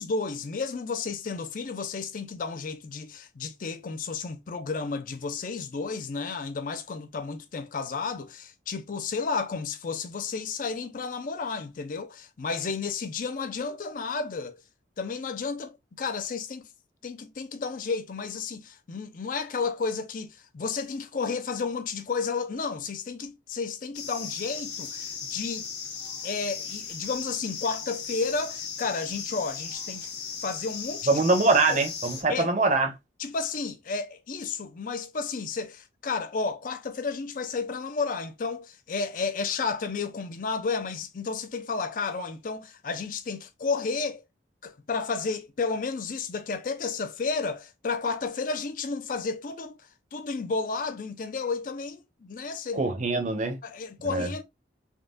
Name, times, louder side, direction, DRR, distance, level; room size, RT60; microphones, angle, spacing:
voice 1, 0.0-14.6 15.0-16.7 17.0-25.7 26.2-30.1 30.4-31.1 31.7-31.8 32.3-32.5 33.2-44.2 44.6-49.8 50.1-52.8 53.6-54.4, left 4 dB, 45° left, 0.4 m, -32 dB
sound 1, 23.9-32.2, left 6 dB, 65° left, 0.8 m, -37 dB
voice 2, 31.1-32.9 52.7-53.6 54.0-54.3, right 3 dB, 40° right, 0.7 m, -23 dB
3.6 x 2.3 x 2.4 m
head